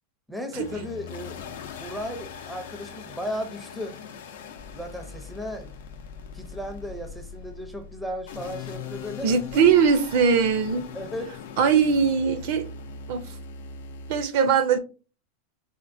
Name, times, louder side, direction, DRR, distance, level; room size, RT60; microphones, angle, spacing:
voice 1, 0.3-1.4 1.8-4.0 4.7-5.8 6.3-9.3 10.9-11.3, equal, ahead, 0.5 m, -35 dB
sound 1, 0.5-14.2, left 6 dB, 80° left, 0.5 m, -40 dB
voice 2, 9.2-10.9 11.6-12.6 13.1-13.3 14.1-14.8, right 6 dB, 60° right, 0.5 m, -20 dB
4.2 x 2.1 x 2.6 m
supercardioid pair, 135°, 0 cm